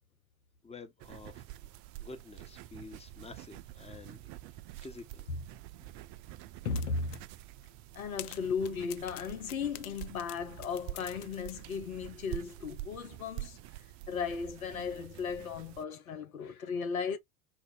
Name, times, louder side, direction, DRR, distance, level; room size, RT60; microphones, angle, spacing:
voice 1, 0.6-1.4 2.0-5.3, left 3 dB, 15° left, 1.2 m, -49 dB
sound 1, 1.0-15.8, right 15 dB, 45° right, 0.5 m, -47 dB
voice 2, 6.6-7.3 7.9-13.6 14.1-17.2, left 5 dB, 85° left, 0.9 m, -36 dB
sound 2, 6.8-7.2 7.6-7.7 8.2-11.6, left 16 dB, 65° left, 0.5 m, -46 dB
4.4 x 2.6 x 4.0 m
hypercardioid pair, 75°, 41 cm